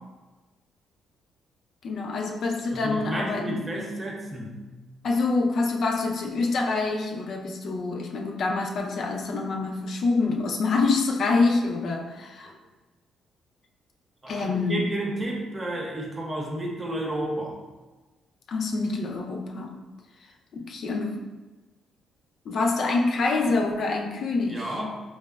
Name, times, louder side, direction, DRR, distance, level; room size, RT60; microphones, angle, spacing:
voice 1, 1.8-3.6 5.0-12.5 14.3-14.9 18.5-19.7 20.5-21.3 22.5-24.7, left 3 dB, 60° left, 2 dB, 0.4 m, -26 dB
voice 2, 2.7-4.6 12.4-12.5 14.2-17.6 24.5-25.0, right 1 dB, 25° right, -1 dB, 0.7 m, -31 dB
4.6 x 2.1 x 2.2 m, 1.2 s
cardioid pair, 90°, 0 cm